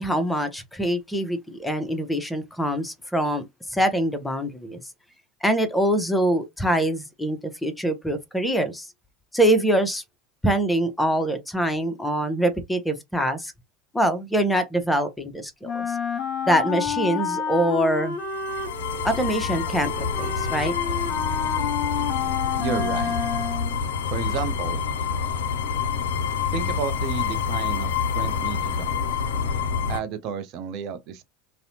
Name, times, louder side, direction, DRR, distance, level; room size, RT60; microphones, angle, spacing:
voice 1, 0.0-3.5 3.7-4.8 5.4-8.9 9.3-10.0 10.4-13.5 13.9-16.0 16.5-18.2 19.0-20.7, right 1 dB, 10° left, 0.6 m, -24 dB
Wind instrument woodwind instrument, 15.6-23.8, left 6 dB, 50° left, 0.8 m, -29 dB
sound 1, 18.2-30.0, left 6 dB, 75° left, 0.4 m, -27 dB
voice 2, 22.6-23.2 24.1-24.8 26.5-29.0 29.9-31.2, right 7 dB, 55° right, 0.5 m, -32 dB
2.6 x 2.0 x 2.7 m
hypercardioid pair, 75°, 0 cm